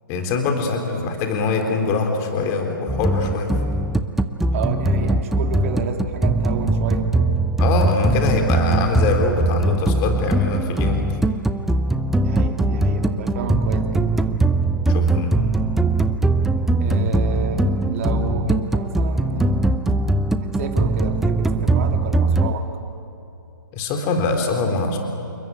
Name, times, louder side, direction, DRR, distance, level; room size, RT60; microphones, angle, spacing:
voice 1, 0.1-3.5 7.6-11.0 14.9-15.4 23.7-25.0, left 4 dB, 25° left, 4 dB, 3.6 m, -23 dB
sound 1, 2.9-22.5, right 2 dB, 5° right, 0.7 m, -21 dB
voice 2, 4.5-7.2 12.2-14.2 16.8-19.8 20.4-22.7, right 4 dB, 40° right, 4 dB, 3.1 m, -29 dB
29.0 x 21.5 x 9.4 m, 2.8 s
hypercardioid pair, 145°, 11 cm